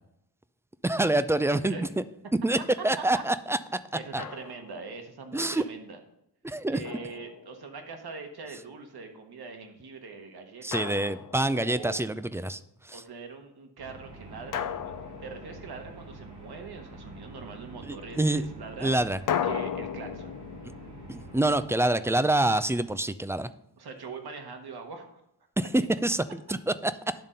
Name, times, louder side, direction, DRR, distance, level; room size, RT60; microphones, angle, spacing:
voice 1, 0.8-1.9 2.4-3.8 4.1-4.2 5.3-5.6 6.4-6.8 10.6-12.6 12.8-13.0 17.8-18.4 18.8-19.2 21.1-23.5 25.6-27.1, right 1 dB, 5° right, 13 dB, 0.3 m, -26 dB
voice 2, 1.5-1.9 3.0-3.2 3.9-6.0 6.7-11.0 11.6-12.0 12.9-15.0 15.2-19.0 19.3-20.3 23.8-25.2, right 4 dB, 65° right, 5 dB, 1.4 m, -42 dB
Drum, 4.2-4.9 6.8-7.9 10.7-11.9 14.5-16.2 19.3-22.2, left 9 dB, 50° left, 0.5 m, -36 dB
sound 1, 13.8-21.6, right 2 dB, 80° right, 2.9 m, -46 dB
11.0 x 3.7 x 5.4 m, 0.80 s
cardioid pair, 60°, 41 cm